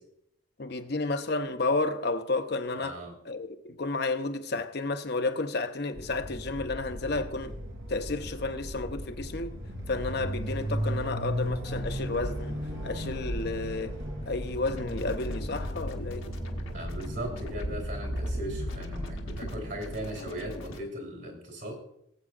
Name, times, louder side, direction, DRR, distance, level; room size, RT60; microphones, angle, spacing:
voice 1, 0.6-7.5 7.9-9.6 9.9-12.6 12.8-13.9 14.3-16.3, left 3 dB, 55° left, 0.7 m, -31 dB
voice 2, 2.8-3.1 16.7-21.7, right 1 dB, 55° right, 3.2 m, -38 dB
sound 1, 5.9-19.6, equal, 90° right, 3.6 m, -35 dB
sound 2, 14.6-20.8, left 1 dB, 85° left, 1.1 m, -40 dB
19.0 x 8.1 x 2.5 m
head